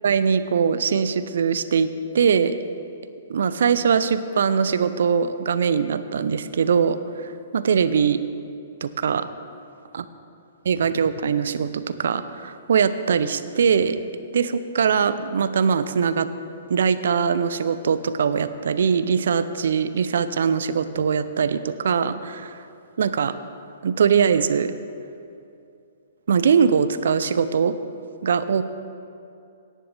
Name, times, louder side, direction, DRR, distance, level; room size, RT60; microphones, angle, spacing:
voice 1, 0.0-2.6 3.3-8.2 8.8-9.3 9.9-10.0 10.7-14.0 14.3-16.3 16.7-22.6 23.0-23.3 23.8-24.7 26.3-27.7 28.2-28.6, right 6 dB, 65° right, 13 dB, 0.6 m, -21 dB
17.0 x 11.0 x 3.4 m, 2.6 s
figure-of-eight pair, 120°, 0 cm